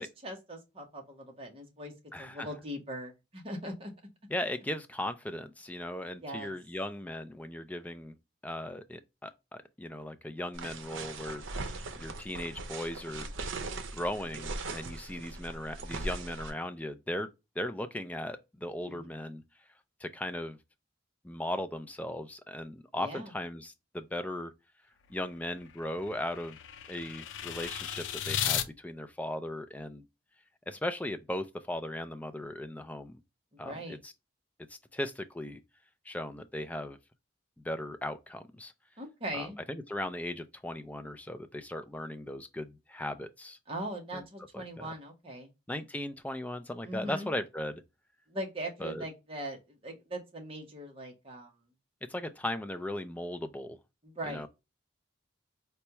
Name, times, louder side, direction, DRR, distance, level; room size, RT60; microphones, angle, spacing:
voice 1, 0.0-1.9 2.2-3.9 6.2-6.5 18.8-19.1 23.0-23.3 33.5-34.0 39.0-39.6 43.7-45.5 46.8-47.3 48.3-51.5 54.0-54.5, right 1 dB, 30° right, 1.0 m, -40 dB
voice 2, 2.1-2.5 4.3-8.2 8.4-13.3 13.9-17.3 17.6-19.4 20.0-20.6 21.2-24.5 25.1-26.6 26.9-30.0 30.7-33.2 33.6-34.1 34.7-35.6 36.1-37.0 37.6-38.7 39.3-43.6 44.1-44.2 44.5-44.9 45.7-47.8 48.8-49.0 52.1-53.8 54.2-54.5, left 1 dB, 10° left, 0.3 m, -37 dB
sound 1, 10.5-16.5, right 3 dB, 90° right, 0.6 m, -39 dB
sound 2, 25.0-28.7, left 9 dB, 85° left, 0.5 m, -36 dB
4.2 x 2.3 x 2.8 m
head